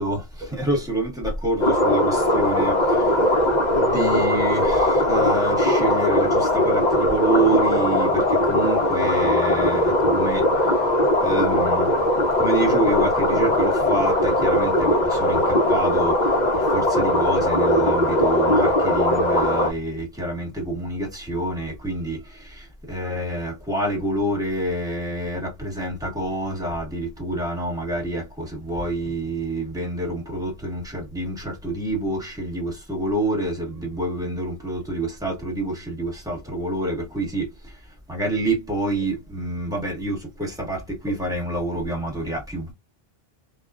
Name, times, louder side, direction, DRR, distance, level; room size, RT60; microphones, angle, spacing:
voice 1, 0.0-10.9 11.2-12.0 12.4-37.8 38.1-42.7, right 1 dB, 5° right, 1.2 m, -27 dB
sound 1, 1.6-19.7, left 1 dB, 50° left, 0.8 m, -20 dB
2.3 x 2.3 x 2.3 m
omnidirectional pair, 1.1 m